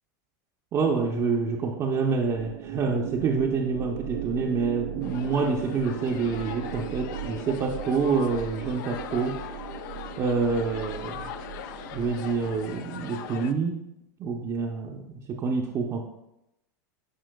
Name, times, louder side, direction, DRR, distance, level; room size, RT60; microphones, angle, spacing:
voice 1, 0.7-9.3 10.2-11.3 11.9-13.8 14.2-15.0 15.3-16.0, right 5 dB, 30° right, -1 dB, 0.6 m, -27 dB
sound 1, 2.3-12.7, right 10 dB, 80° right, 0.5 m, -38 dB
sound 2, 5.0-13.5, left 9 dB, 65° left, 0.5 m, -40 dB
10.5 x 4.3 x 2.2 m, 0.88 s
supercardioid pair, 125°, 11 cm